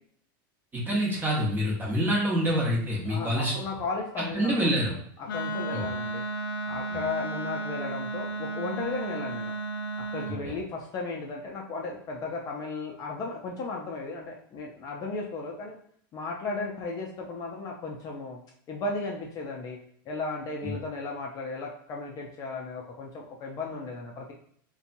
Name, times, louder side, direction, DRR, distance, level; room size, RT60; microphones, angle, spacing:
voice 1, 0.7-3.5 4.3-4.9 5.7-5.8 20.6-20.7, equal, 15° right, -4 dB, 1.0 m, -26 dB
voice 2, 3.1-6.2 6.6-9.5 10.1-15.8 16.1-18.4 18.7-19.8 20.1-24.3, left 3 dB, 30° left, -1 dB, 0.4 m, -35 dB
Wind instrument woodwind instrument, 5.3-10.4, right 2 dB, 85° left, 0.5 m, -33 dB
2.7 x 2.2 x 2.6 m, 0.62 s
supercardioid pair, 135°, 11 cm